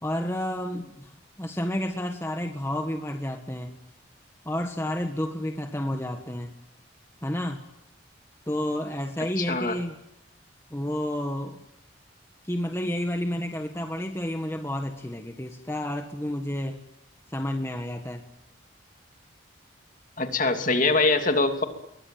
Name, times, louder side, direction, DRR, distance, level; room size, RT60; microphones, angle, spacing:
voice 1, 0.0-3.8 4.4-6.5 7.2-7.6 8.5-10.0 10.7-11.6 12.4-16.8 17.3-18.2, left 1 dB, 15° left, 5 dB, 1.5 m, -30 dB
voice 2, 9.4-9.8 20.2-21.6, left 3 dB, 40° left, 6 dB, 2.9 m, -23 dB
28.0 x 23.0 x 9.2 m, 0.85 s
head